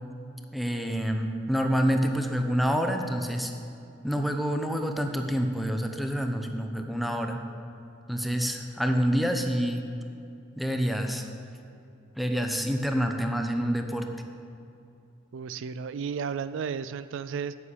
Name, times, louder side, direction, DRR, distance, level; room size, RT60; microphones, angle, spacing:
voice 1, 0.5-3.5 4.0-7.4 8.1-9.8 10.6-11.3 12.2-14.1, equal, ahead, 4 dB, 0.9 m, -27 dB
voice 2, 15.3-17.6, right 6 dB, 65° right, 14 dB, 0.4 m, -33 dB
9.5 x 8.5 x 8.4 m, 2.6 s
head